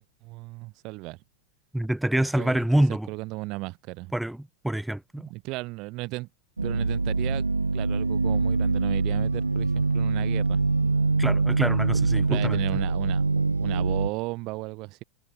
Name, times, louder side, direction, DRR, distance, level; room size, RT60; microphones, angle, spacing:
voice 1, 0.2-1.2 2.4-2.6 3.1-4.1 5.2-6.3 6.6-7.5 7.7-10.6 12.1-15.0, right 23 dB, 40° right, 1.5 m, -35 dB
voice 2, 1.7-3.1 4.1-5.3 11.2-12.8, right 1 dB, 5° right, 1.3 m, -26 dB
sound 1, 6.6-14.1, right 3 dB, 80° right, 0.8 m, -24 dB
figure-of-eight pair, 90°, 0 cm